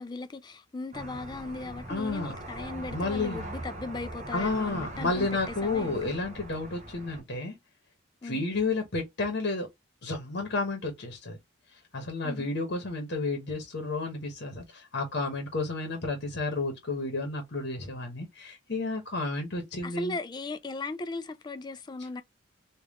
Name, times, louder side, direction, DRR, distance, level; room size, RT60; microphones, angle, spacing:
voice 1, 0.0-6.1 8.2-8.4 12.2-12.5 19.8-22.2, left 3 dB, 20° left, 0.3 m, -37 dB
sound 1, 0.9-7.2, right 1 dB, 35° right, 0.7 m, -41 dB
voice 2, 1.9-2.4 2.9-3.5 4.3-7.6 8.2-9.7 10.0-11.4 11.9-20.2, left 3 dB, 60° left, 1.0 m, -31 dB
3.5 x 2.4 x 3.5 m
head